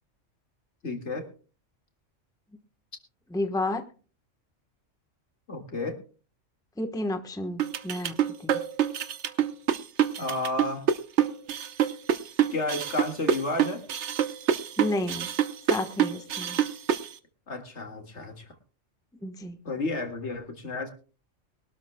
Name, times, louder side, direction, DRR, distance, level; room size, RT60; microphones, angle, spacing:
voice 1, 0.8-1.3 5.5-6.0 10.2-10.9 12.5-13.8 17.5-18.5 19.6-20.9, left 2 dB, 65° left, 5 dB, 2.3 m, -32 dB
voice 2, 3.3-3.8 6.8-8.1 8.4-8.6 14.8-15.3 15.7-16.6 19.2-19.6, left 1 dB, 5° left, 6 dB, 1.0 m, -31 dB
sound 1, 7.6-17.1, right 9 dB, 65° right, 1.1 m, -26 dB
23.0 x 12.5 x 2.2 m, 0.37 s
omnidirectional pair, 1.3 m